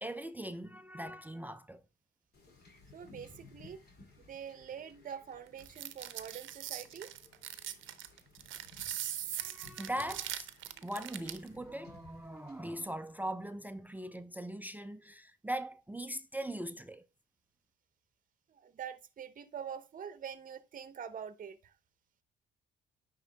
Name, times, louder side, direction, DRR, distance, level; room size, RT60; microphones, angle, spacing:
voice 1, 0.0-1.8 9.4-10.5 10.8-17.1, right 1 dB, 10° right, 0.4 m, -40 dB
Wind / Ocean / Boat Water vehicle, 2.3-12.7, left 3 dB, 55° left, 2.3 m, -59 dB
voice 2, 2.9-3.8 4.3-7.1 18.5-21.7, right 8 dB, 45° right, 0.8 m, -45 dB
sound 1, 5.6-11.5, right 12 dB, 75° right, 0.7 m, -41 dB
10.0 x 3.7 x 3.3 m
cardioid pair, 90°, 20 cm